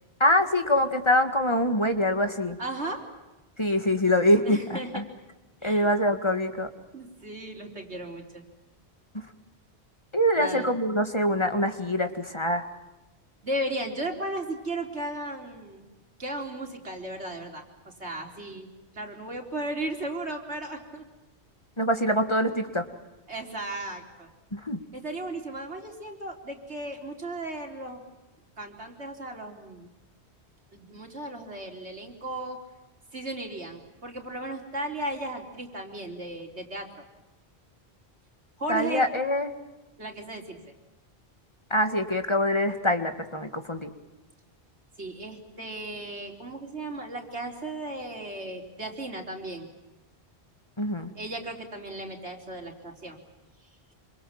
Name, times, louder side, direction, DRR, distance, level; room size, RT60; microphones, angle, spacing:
voice 1, 0.2-2.6 3.6-5.0 5.6-6.7 9.1-9.3 10.1-12.6 21.8-22.8 24.5-24.8 38.7-39.5 41.7-43.9 50.8-51.1, left 1 dB, 25° left, 7 dB, 1.9 m, -24 dB
voice 2, 2.6-3.0 4.4-5.0 5.6-5.9 6.9-8.4 10.4-10.7 13.4-15.8 16.2-18.7 18.9-21.0 23.3-24.3 24.9-28.0 28.6-29.9 30.7-32.6 33.1-37.0 38.6-39.1 40.0-40.6 45.0-49.7 51.2-53.2, right 1 dB, 90° right, 2 dB, 4.3 m, -35 dB
27.0 x 26.0 x 7.5 m, 1.1 s
omnidirectional pair, 1.1 m